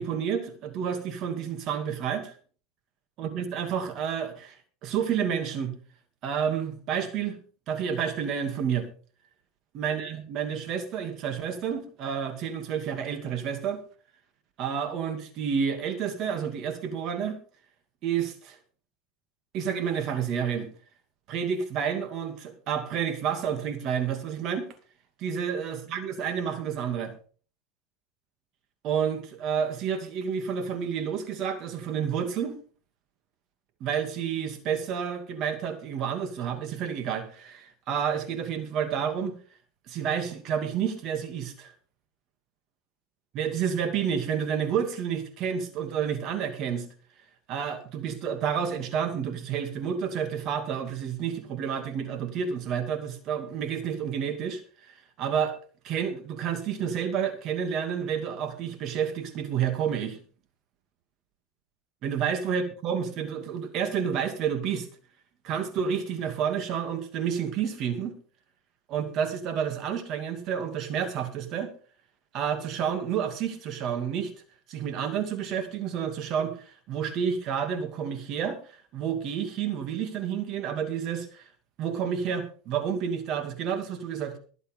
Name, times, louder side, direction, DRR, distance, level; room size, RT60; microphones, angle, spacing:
voice 1, 0.0-2.3 3.2-4.6 4.8-5.7 6.2-7.4 7.7-8.9 9.7-13.8 14.6-17.4 18.0-18.6 19.5-20.7 21.3-24.7 25.2-27.1 28.8-32.6 33.8-39.3 39.9-41.7 43.3-46.9 47.5-54.6 54.9-55.6 55.8-60.2 62.0-64.9 65.4-68.1 68.9-71.7 72.3-74.3 74.7-81.4 81.8-84.4, right 7 dB, 50° right, 7 dB, 2.6 m, -30 dB
23.5 x 8.1 x 3.7 m, 0.40 s
supercardioid pair, 120°, 0 cm